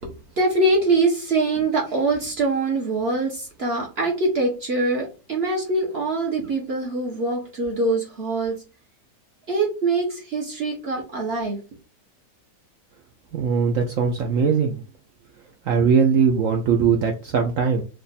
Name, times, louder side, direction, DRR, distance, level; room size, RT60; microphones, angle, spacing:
voice 1, 0.0-8.6 9.5-11.6, right 2 dB, 45° right, -1 dB, 0.9 m, -23 dB
voice 2, 13.3-14.8 15.7-17.8, right 6 dB, 70° right, 3 dB, 0.8 m, -20 dB
3.4 x 2.5 x 4.0 m, 0.32 s
omnidirectional pair, 2.0 m